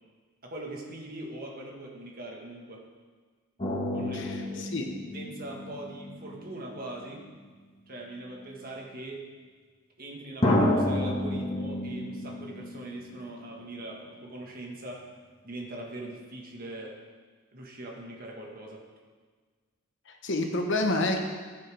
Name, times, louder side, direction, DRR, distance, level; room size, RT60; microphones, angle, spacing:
voice 1, 0.4-2.8 3.9-4.7 5.1-7.2 7.9-9.2 10.0-15.1 15.4-17.0 17.5-18.8, right 1 dB, 40° right, -1 dB, 1.6 m, -41 dB
sound 1, 3.6-7.5 8.4-8.5 10.4-13.7 14.0-14.1, left 1 dB, 30° left, 1.7 m, -31 dB
voice 2, 4.1-4.9 20.1-21.2, left 2 dB, 55° left, 3 dB, 1.2 m, -29 dB
14.0 x 8.3 x 3.5 m, 1.5 s
head